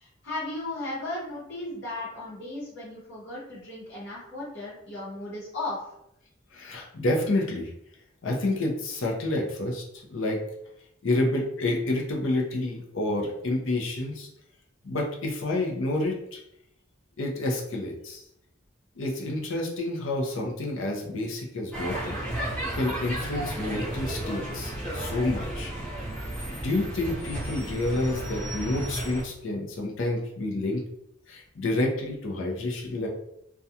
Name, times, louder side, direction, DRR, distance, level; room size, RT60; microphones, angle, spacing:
voice 1, 0.0-5.8, left 2 dB, 65° left, -9 dB, 1.0 m, -36 dB
voice 2, 6.5-7.7 8.2-9.8 10.1-10.4 11.0-14.3 14.8-16.4 17.2-18.2 19.0-25.7 26.5-30.8 31.3-33.1, left 2 dB, 80° left, 0 dB, 0.6 m, -29 dB
sound 1, 21.7-29.2, right 1 dB, 5° left, 0.7 m, -33 dB
2.4 x 2.2 x 2.7 m, 0.78 s
head